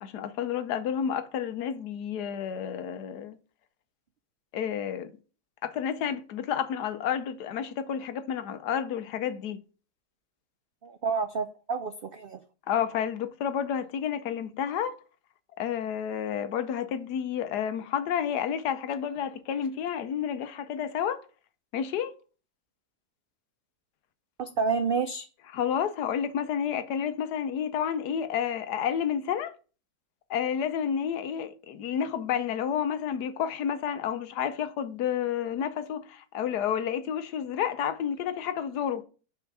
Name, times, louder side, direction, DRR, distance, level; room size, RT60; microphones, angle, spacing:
voice 1, 0.0-3.4 4.5-5.1 5.6-9.6 12.7-15.0 15.6-21.2 21.7-22.1 25.5-29.5 30.3-39.0, left 8 dB, 85° left, 1.3 m, -30 dB
voice 2, 10.8-12.4 24.4-25.3, right 5 dB, 90° right, 0.5 m, -29 dB
5.7 x 4.5 x 6.0 m
omnidirectional pair, 1.7 m